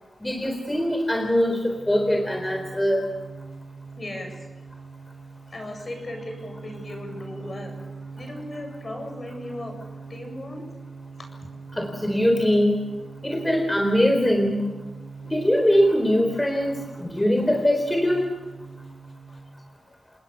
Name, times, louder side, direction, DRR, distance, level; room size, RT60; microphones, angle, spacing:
voice 1, 0.2-3.1 11.7-12.8 13.2-14.7 15.2-18.3, equal, 15° left, 3 dB, 4.1 m, -22 dB
sound 1, 1.2-19.5, right 4 dB, 60° left, 4.7 m, -42 dB
voice 2, 4.0-4.5 5.5-7.8 8.1-9.8 10.1-10.6 11.4-11.5, left 1 dB, 40° left, 3 dB, 7.8 m, -36 dB
28.5 x 20.0 x 6.9 m, 1.2 s
wide cardioid pair, 80°, 0 cm